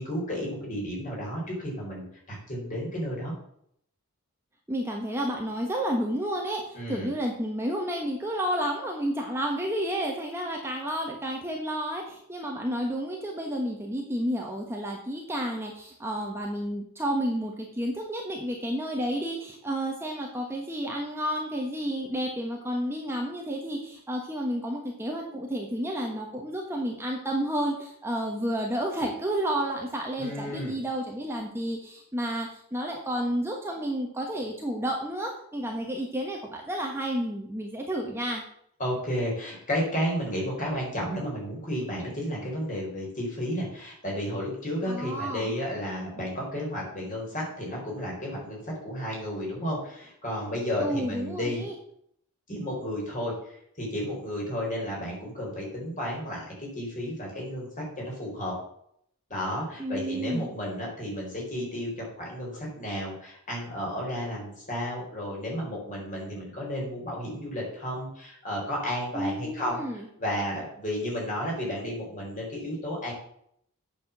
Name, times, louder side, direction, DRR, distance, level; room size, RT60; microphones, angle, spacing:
voice 1, 0.0-3.3 6.7-7.1 30.2-30.7 38.8-51.6 52.5-58.5 59.3-69.8 70.2-73.1, equal, 35° left, -3 dB, 4.5 m, -32 dB
voice 2, 4.7-38.4 44.9-45.5 50.8-51.7 59.8-60.5 69.1-70.1, equal, 10° right, 0 dB, 1.2 m, -31 dB
8.6 x 6.1 x 7.3 m, 0.70 s
head